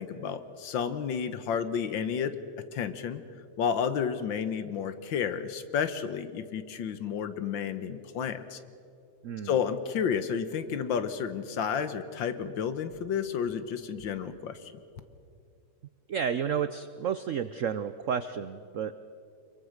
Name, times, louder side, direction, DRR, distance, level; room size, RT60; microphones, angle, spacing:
voice 1, 0.0-2.3 2.7-3.2 3.6-8.6 9.4-14.6, left 7 dB, 70° left, 11 dB, 1.8 m, -31 dB
voice 2, 9.2-9.6 16.1-19.1, right 7 dB, 80° right, 12 dB, 0.7 m, -31 dB
25.0 x 23.0 x 6.5 m, 2.5 s
omnidirectional pair, 2.2 m